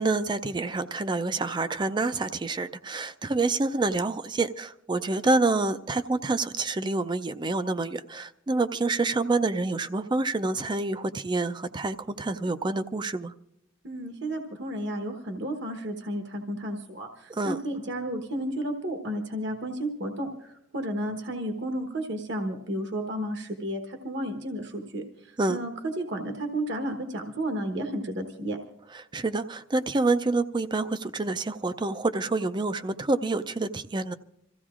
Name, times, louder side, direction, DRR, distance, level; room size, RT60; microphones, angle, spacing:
voice 1, 0.0-13.3 17.3-17.6 25.4-25.6 28.9-34.1, right 3 dB, 25° right, 12 dB, 0.4 m, -27 dB
voice 2, 13.8-28.6, right 1 dB, 65° right, 4 dB, 1.1 m, -32 dB
27.0 x 15.0 x 2.5 m, 0.79 s
head